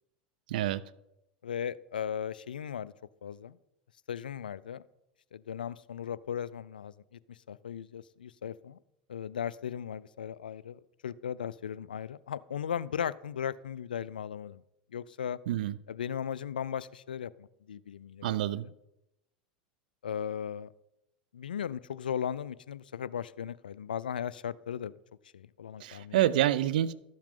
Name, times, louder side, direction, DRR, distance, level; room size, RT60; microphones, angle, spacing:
voice 1, 0.5-0.8 15.5-15.7 18.2-18.7 25.8-26.9, right 12 dB, 75° right, 17 dB, 0.4 m, -27 dB
voice 2, 1.4-2.9 3.2-3.6 4.1-4.8 5.3-8.8 9.1-14.6 14.9-15.4 15.9-18.6 20.0-20.7 21.3-24.9 25.3-26.2, left 8 dB, 90° left, 19 dB, 0.3 m, -37 dB
12.5 x 7.4 x 3.7 m, 0.87 s
hypercardioid pair, 95°, 5 cm